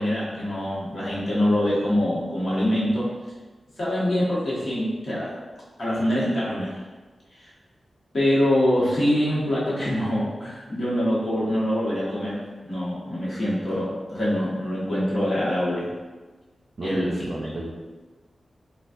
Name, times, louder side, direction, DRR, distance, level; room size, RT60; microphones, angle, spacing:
voice 1, 0.0-3.1 3.8-5.3 5.8-6.8 7.4-7.5 8.1-12.4 12.6-15.9 16.8-17.1, left 1 dB, 45° left, -8 dB, 1.2 m, -24 dB
voice 2, 16.8-17.7, right 2 dB, 50° right, -3 dB, 0.4 m, -32 dB
4.0 x 2.2 x 2.5 m, 1.3 s
wide cardioid pair, 125°, 0 cm